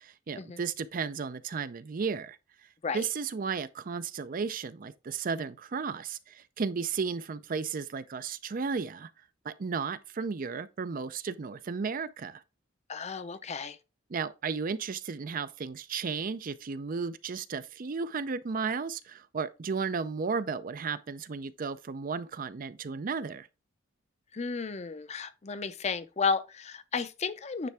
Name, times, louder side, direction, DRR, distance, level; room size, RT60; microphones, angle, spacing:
voice 1, 0.0-2.4 2.9-9.1 9.4-12.4 14.1-23.5, right 5 dB, 45° right, 0.5 m, -34 dB
voice 2, 12.9-13.8 24.3-27.7, left 5 dB, 35° left, 0.5 m, -33 dB
9.2 x 3.4 x 3.4 m
head